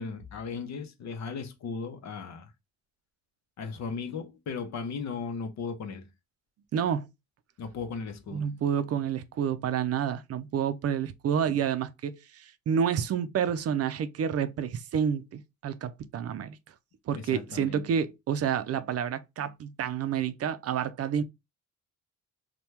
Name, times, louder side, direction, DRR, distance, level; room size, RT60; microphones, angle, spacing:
voice 1, 0.0-2.5 3.6-6.0 7.6-8.5 11.5-11.6 17.3-17.8, left 5 dB, 65° left, 0.8 m, -36 dB
voice 2, 6.7-7.1 8.3-16.6 17.1-21.2, right 8 dB, 55° right, 0.5 m, -29 dB
2.9 x 2.2 x 3.2 m
cardioid pair, 90°, 30 cm